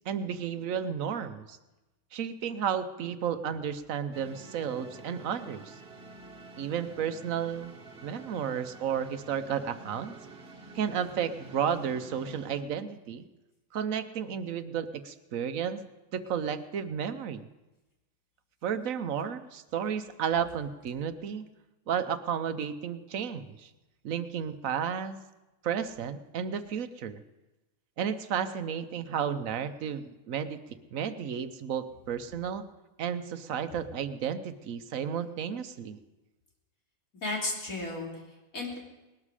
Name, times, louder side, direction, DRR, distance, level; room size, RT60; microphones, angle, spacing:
voice 1, 0.1-1.6 2.1-5.7 6.6-7.7 8.0-10.2 10.7-13.3 13.7-15.8 16.1-17.5 18.6-21.5 21.9-23.7 24.0-25.2 25.6-27.2 28.0-30.6 30.9-32.6 33.0-36.0, right 8 dB, 75° right, 11 dB, 1.2 m, -32 dB
sound 1, 4.1-12.6, right 2 dB, 45° right, 1.5 m, -48 dB
voice 2, 37.2-38.8, left 2 dB, 80° left, -2 dB, 3.6 m, -34 dB
19.5 x 12.5 x 4.9 m, 1.0 s
omnidirectional pair, 1.4 m